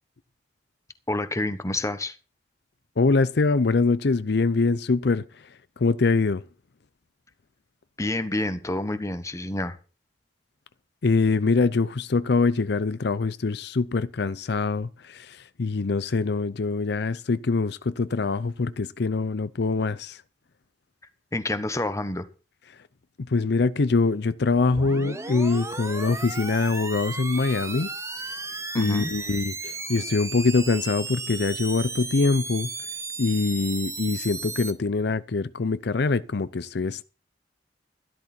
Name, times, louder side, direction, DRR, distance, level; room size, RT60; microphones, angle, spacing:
voice 1, 1.1-2.2 8.0-9.7 21.3-22.2 28.7-29.1, left 2 dB, 20° left, 1.2 m, -28 dB
voice 2, 3.0-6.4 11.0-20.2 23.2-27.9 28.7-32.7 33.2-37.0, left 3 dB, 65° left, 0.6 m, -24 dB
sound 1, 24.7-34.7, right 3 dB, 15° right, 1.4 m, -35 dB
13.5 x 12.0 x 4.4 m
head